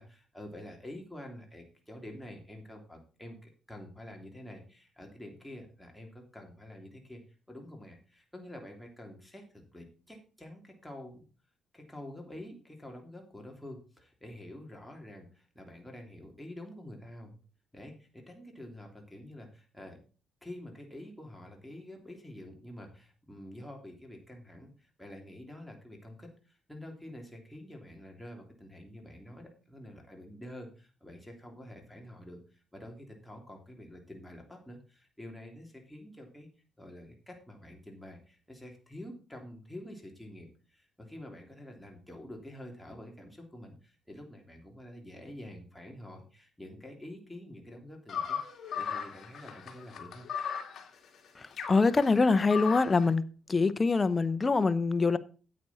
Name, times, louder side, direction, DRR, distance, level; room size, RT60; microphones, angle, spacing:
voice 1, 0.0-7.2 7.5-11.2 11.7-17.3 17.7-20.0 20.4-36.5 36.8-48.4 48.8-50.3, left 1 dB, 5° left, 3.1 m, -47 dB
sound 1, 48.1-53.1, left 7 dB, 60° left, 2.1 m, -37 dB
voice 2, 51.4-53.2 53.5-55.2, left 4 dB, 30° left, 0.8 m, -25 dB
9.4 x 8.5 x 4.3 m
cardioid pair, 90°, 0 cm